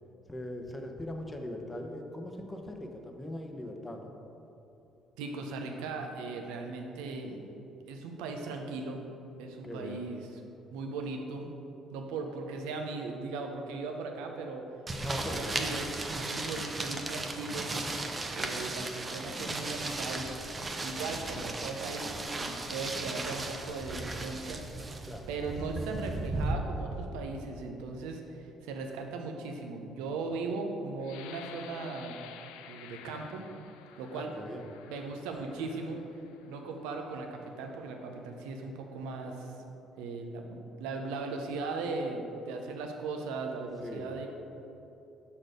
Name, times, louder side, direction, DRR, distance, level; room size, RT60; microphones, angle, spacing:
voice 1, 0.3-4.1 9.6-10.0 15.0-15.7 25.1-25.3 34.1-34.7 43.8-44.2, left 1 dB, 15° left, 3 dB, 0.8 m, -40 dB
voice 2, 5.2-7.4 7.9-9.1 9.4-10.4 10.7-11.5 11.9-14.6 15.3-17.7 18.3-20.5 20.8-24.6 25.3-32.2 32.7-33.4 34.0-34.3 34.9-36.0 36.4-39.5 40.0-44.3, right 3 dB, 85° right, 3 dB, 0.7 m, -38 dB
sound 1, 14.9-26.5, right 2 dB, 25° right, 0.7 m, -36 dB
sound 2, 31.0-36.7 37.3-37.5 38.0-38.4, left 9 dB, 85° left, 0.3 m, -52 dB
6.3 x 4.2 x 5.1 m, 2.9 s
supercardioid pair, 75°, 0 cm